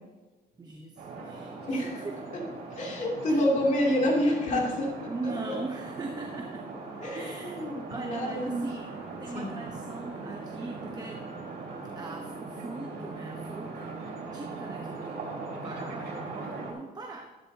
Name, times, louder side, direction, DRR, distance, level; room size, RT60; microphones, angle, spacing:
voice 1, 0.6-2.2 3.3-3.4 5.1-6.7 7.1-11.3 11.9-17.5, right 3 dB, 25° right, 2 dB, 1.0 m, -41 dB
sound 1, 1.0-16.7, right 3 dB, 75° right, 3.5 m, -40 dB
voice 2, 2.7-5.1 5.5-5.6 7.0-8.6 9.3-9.5, left 1 dB, 50° left, -3 dB, 3.2 m, -28 dB
13.5 x 11.0 x 2.9 m, 1.2 s
cardioid pair, 120°, 17 cm